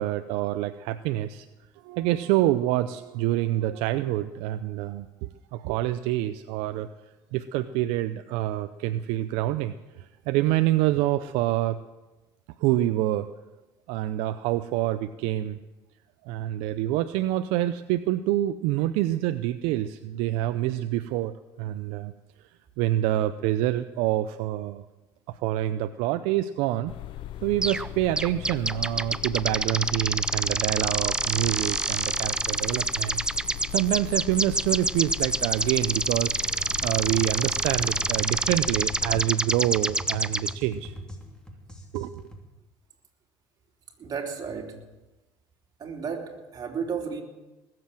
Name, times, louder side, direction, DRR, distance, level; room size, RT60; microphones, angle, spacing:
voice 1, 0.0-1.5 1.8-6.9 7.3-11.8 12.6-13.3 13.9-15.6 16.2-22.1 22.8-24.8 25.3-26.9 27.4-33.2 33.7-36.4 36.8-40.9 41.9-42.3, right 14 dB, 75° right, 11 dB, 0.5 m, -27 dB
sound 1, 26.9-39.3, left 13 dB, 60° left, 0.6 m, -39 dB
sound 2, 27.6-27.9 28.2-40.5, right 2 dB, 10° right, 0.5 m, -27 dB
sound 3, 36.3-42.4, equal, 10° left, 3.0 m, -41 dB
voice 2, 44.0-44.8 45.8-47.2, right 6 dB, 40° right, 1 dB, 3.2 m, -33 dB
20.0 x 7.7 x 7.5 m, 1.1 s
supercardioid pair, 85°, 10 cm